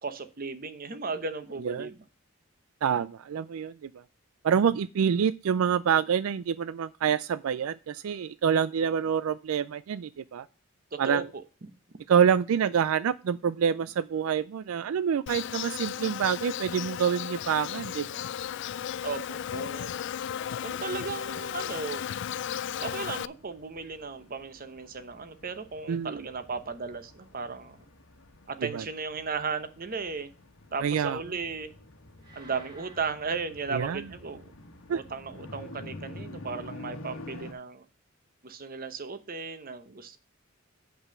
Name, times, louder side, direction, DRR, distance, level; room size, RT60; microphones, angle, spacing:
voice 1, 0.0-2.0 10.9-11.4 19.0-19.9 20.6-22.1 22.8-27.8 28.5-30.3 30.7-31.7 32.3-34.4 34.9-37.8 38.4-40.2, right 4 dB, 45° right, 0.9 m, -35 dB
voice 2, 2.8-4.0 4.4-10.5 11.0-11.3 12.1-18.1 25.9-26.2 28.6-28.8 30.8-31.2 33.7-34.0 34.9-35.0, right 7 dB, 85° right, 0.4 m, -27 dB
Insect, 15.3-23.3, left 9 dB, 60° left, 0.3 m, -35 dB
sound 1, 18.4-37.5, left 1 dB, 80° left, 1.4 m, -49 dB
sound 2, 32.2-34.5, right 2 dB, 20° right, 2.8 m, -55 dB
7.8 x 5.6 x 5.8 m
head